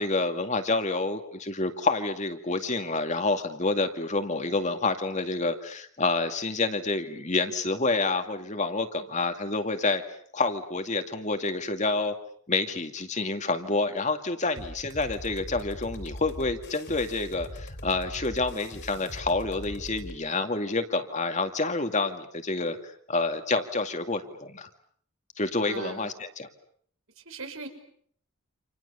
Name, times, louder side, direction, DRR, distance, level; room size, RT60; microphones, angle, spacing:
voice 1, 0.0-10.0 10.3-12.1 12.5-24.7 25.4-26.1 26.4-26.5, left 3 dB, 35° left, 7 dB, 2.2 m, -28 dB
sound 1, 14.6-20.2, left 1 dB, 55° left, 4.0 m, -41 dB
voice 2, 25.6-26.1 27.2-27.7, right 3 dB, 70° right, 5 dB, 5.8 m, -39 dB
29.5 x 27.5 x 6.9 m, 0.62 s
head